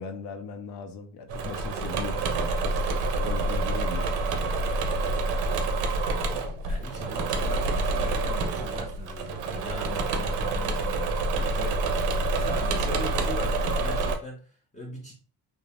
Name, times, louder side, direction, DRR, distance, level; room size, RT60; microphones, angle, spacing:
voice 1, 0.0-2.5 3.0-4.2, left 5 dB, 75° left, 6 dB, 0.6 m, -38 dB
Engine / Mechanisms, 1.3-14.2, right 2 dB, 90° right, 0.6 m, -27 dB
voice 2, 5.4-15.1, left 1 dB, 20° left, -2 dB, 0.6 m, -41 dB
2.6 x 2.0 x 2.9 m, 0.40 s
cardioid pair, 110°, 41 cm